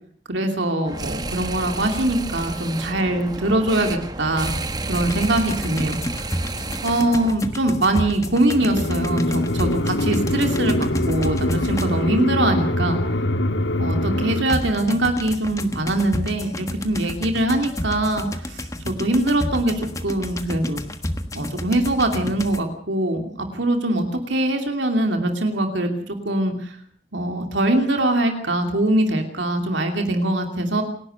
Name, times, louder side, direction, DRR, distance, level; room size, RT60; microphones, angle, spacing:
voice 1, 0.3-4.5 4.9-6.3 6.8-13.0 13.8-20.8 21.3-26.8 27.1-30.8, right 1 dB, 80° right, 4 dB, 2.8 m, -22 dB
sound 1, 0.9-7.3, right 2 dB, 20° right, 0.9 m, -31 dB
sound 2, 4.9-12.2 14.5-22.6, left 1 dB, 15° left, 1.3 m, -31 dB
sound 3, 8.5-14.4, left 1 dB, 80° left, 1.5 m, -23 dB
28.5 x 11.5 x 8.1 m, 0.62 s
head